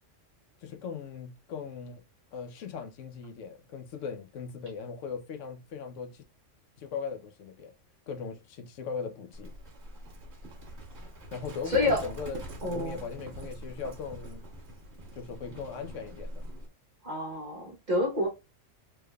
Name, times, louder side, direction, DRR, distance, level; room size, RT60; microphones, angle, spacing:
voice 1, 0.6-2.0 2.3-6.2 6.8-7.7 8.1-9.5 11.3-14.4 15.1-16.5, left 6 dB, 75° left, 1.0 m, -38 dB
Livestock farm animals working animals, 9.3-16.7, right 1 dB, 60° right, 1.4 m, -44 dB
voice 2, 11.7-12.0 12.6-13.0 17.0-18.3, left 1 dB, 40° right, 1.0 m, -28 dB
3.3 x 3.2 x 2.2 m
omnidirectional pair, 1.3 m